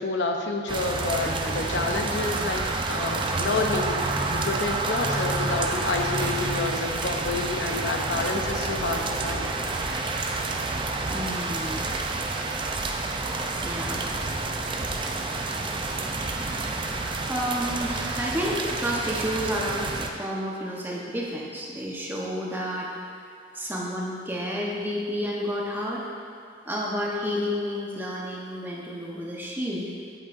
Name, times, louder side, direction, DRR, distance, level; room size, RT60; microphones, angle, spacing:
voice 1, 0.0-9.5, left 3 dB, 80° left, 2 dB, 0.7 m, -29 dB
sound 1, 0.7-20.1, right 3 dB, 30° right, 0.5 m, -29 dB
voice 2, 11.1-11.9 13.6-14.1 16.2-16.4 17.3-22.9 23.5-26.1 26.7-29.9, equal, 10° right, -3 dB, 1.0 m, -30 dB
8.5 x 7.9 x 2.6 m, 2.6 s
head